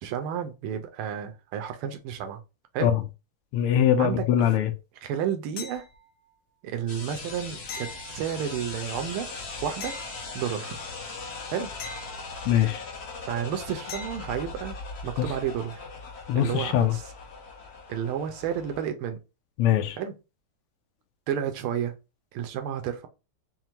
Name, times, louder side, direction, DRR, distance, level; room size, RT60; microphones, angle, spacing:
voice 1, 0.0-2.4 2.7-2.9 4.0-4.6 5.0-5.9 6.6-9.3 9.6-10.0 10.3-10.8 11.5-11.7 13.3-14.8 15.0-15.8 16.3-17.0 17.9-19.2 20.0-20.1 21.3-21.9 22.3-23.1, right 9 dB, 85° right, 1.5 m, -31 dB
voice 2, 3.5-4.7 12.5-12.8 16.3-16.9 19.6-20.0, left 10 dB, 85° left, 1.5 m, -22 dB
sound 1, 5.6-6.3 7.7-8.8 9.8-10.8 11.8-12.8 13.9-14.5 17.3-17.4, left 4 dB, 70° left, 1.6 m, -42 dB
sound 2, 6.9-18.9, left 3 dB, 50° left, 0.8 m, -39 dB
5.5 x 2.2 x 3.0 m
omnidirectional pair, 2.4 m